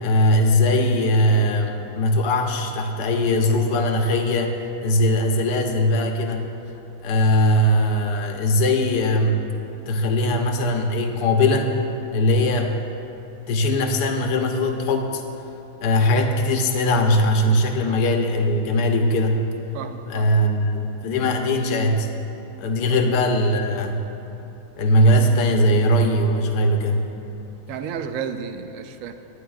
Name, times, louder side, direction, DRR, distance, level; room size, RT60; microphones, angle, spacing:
voice 1, 0.0-4.6 4.8-6.5 7.0-9.4 9.9-11.8 12.1-12.8 13.5-15.2 15.8-19.4 20.1-22.1 22.6-24.0 24.8-27.1, left 1 dB, 85° left, 3 dB, 1.4 m, -20 dB
voice 2, 19.7-20.3 27.7-29.1, right 7 dB, 65° right, 8 dB, 0.8 m, -32 dB
19.5 x 9.8 x 2.3 m, 2.8 s
omnidirectional pair, 1.8 m